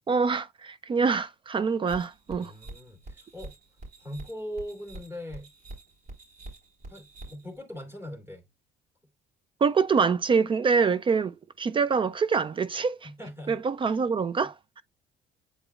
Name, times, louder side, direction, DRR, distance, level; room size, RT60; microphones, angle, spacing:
voice 1, 0.1-2.5 9.6-13.1 13.5-14.8, right 5 dB, 30° right, 0.4 m, -25 dB
sound 1, 1.9-7.6, right 2 dB, 55° right, 4.3 m, -46 dB
voice 2, 2.4-3.5 4.0-5.5 6.9-8.4 13.0-13.6, equal, 15° right, 2.9 m, -40 dB
8.7 x 4.9 x 2.4 m
cardioid pair, 110°, 17 cm